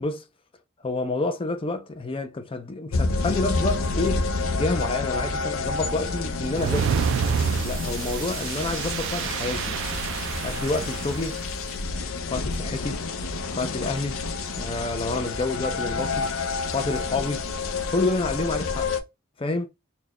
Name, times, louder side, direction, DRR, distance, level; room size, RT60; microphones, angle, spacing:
voice 1, 0.8-4.3 4.5-7.0 7.6-9.8 10.4-11.4 12.3-13.0 13.6-14.2 14.6-16.3 16.7-17.5 17.9-18.9 19.4-19.7, left 2 dB, 25° left, 0.5 m, -28 dB
sound 1, 2.9-19.0, left 3 dB, 80° left, 0.6 m, -29 dB
sound 2, 6.5-11.4, right 7 dB, 65° right, 0.3 m, -28 dB
4.3 x 2.2 x 2.9 m
head